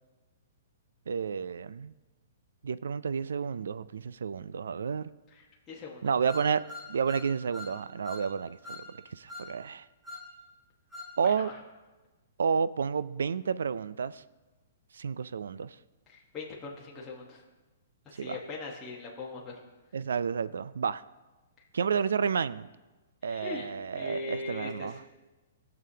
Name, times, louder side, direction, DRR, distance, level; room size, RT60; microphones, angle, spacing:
voice 1, 1.1-1.9 2.6-5.1 6.0-8.8 9.1-9.9 11.2-11.5 12.4-14.2 14.9-15.8 18.1-18.4 19.9-21.0 21.7-22.7 23.2-25.0, right 6 dB, 90° right, 0.3 m, -31 dB
voice 2, 5.3-6.1 11.4-11.5 16.1-17.4 18.1-19.6 23.2-23.7 23.9-25.0, left 3 dB, 20° left, 1.2 m, -40 dB
sound 1, 6.3-7.8 8.0-8.3 8.6-8.9 9.3-9.5 10.0-10.3 10.9-11.1, left 3 dB, 10° right, 1.3 m, -43 dB
17.5 x 6.9 x 2.8 m
hypercardioid pair, 155°, 0 cm